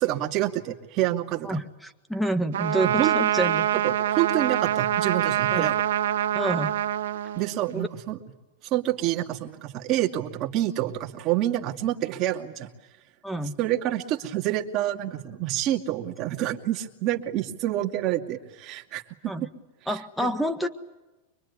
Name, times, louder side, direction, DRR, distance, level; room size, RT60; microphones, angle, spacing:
voice 1, 0.0-1.6 2.8-3.2 3.8-5.8 7.4-8.2 8.7-12.7 13.6-19.5 19.9-20.3, right 13 dB, 40° right, 1 dB, 2.4 m, -28 dB
voice 2, 1.4-3.7 5.5-5.7 6.3-6.7 7.7-7.9 13.2-13.6 19.3-19.5 19.9-20.7, right 1 dB, ahead, 9 dB, 1.6 m, -28 dB
Trumpet, 2.5-7.8, right 11 dB, 85° right, 1.2 m, -25 dB
24.5 x 23.5 x 9.8 m, 1.1 s
supercardioid pair, 140°, 0 cm